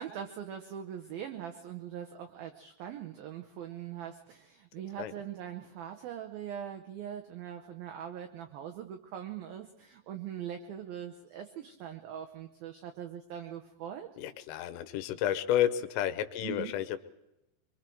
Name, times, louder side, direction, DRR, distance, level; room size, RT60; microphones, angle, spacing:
voice 1, 0.0-14.1 16.4-16.7, right 9 dB, 85° right, 5 dB, 2.0 m, -42 dB
voice 2, 14.2-17.0, left 11 dB, 90° left, 10 dB, 3.5 m, -31 dB
24.0 x 23.5 x 4.6 m, 0.90 s
omnidirectional pair, 5.6 m